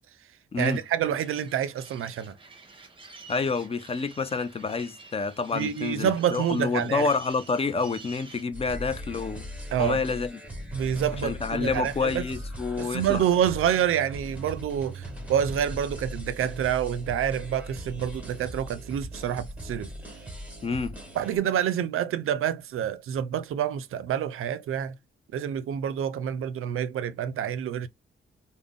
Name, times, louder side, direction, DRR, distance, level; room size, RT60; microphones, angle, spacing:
sound 1, 0.6-8.4, right 3 dB, 25° right, 0.7 m, -49 dB
voice 1, 0.6-2.3 5.5-7.1 9.7-10.0 10.7-12.2 12.8-19.9 21.2-25.0 25.3-27.9, right 9 dB, 85° right, 0.4 m, -27 dB
voice 2, 3.3-9.4 9.8-10.4 11.1-13.2 20.6-21.0, left 4 dB, 30° left, 0.4 m, -28 dB
sound 2, 8.5-21.4, equal, 5° right, 1.2 m, -39 dB
3.5 x 2.1 x 3.6 m
wide cardioid pair, 160°, 21 cm